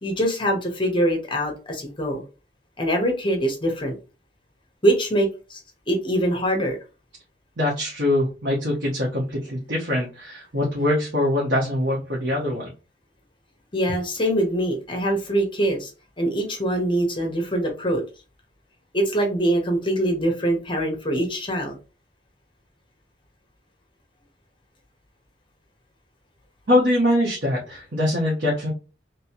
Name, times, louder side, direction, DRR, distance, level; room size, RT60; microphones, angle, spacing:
voice 1, 0.0-2.2 2.8-4.0 4.8-5.6 5.9-6.8 13.7-15.9 16.2-18.0 18.9-21.8, right 1 dB, 30° left, 2 dB, 0.9 m, -23 dB
voice 2, 7.6-12.7 26.7-28.7, left 1 dB, 85° right, -5 dB, 1.2 m, -23 dB
3.2 x 2.9 x 2.9 m, 0.32 s
head